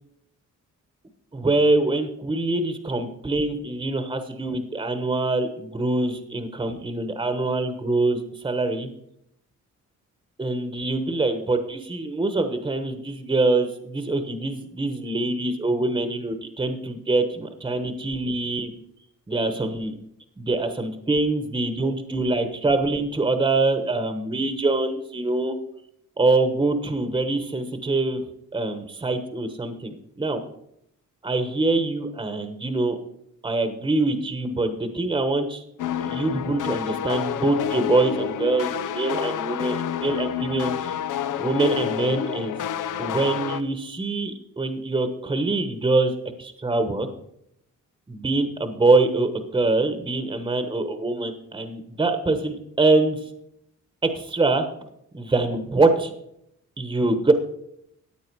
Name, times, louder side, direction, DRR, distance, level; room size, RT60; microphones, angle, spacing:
voice 1, 1.3-8.9 10.4-18.7 19.3-19.9 20.4-25.5 26.2-28.2 28.5-30.4 31.2-33.0 33.4-35.6 36.0-41.0 41.4-42.5 43.0-46.1 46.4-47.1 48.1-53.2 54.0-54.7 55.1-56.1 56.8-57.3, right 2 dB, 15° right, 8 dB, 1.1 m, -24 dB
sound 1, 35.8-43.6, left 9 dB, 75° left, 0.7 m, -29 dB
14.5 x 9.1 x 4.6 m, 0.75 s
wide cardioid pair, 155°, 31 cm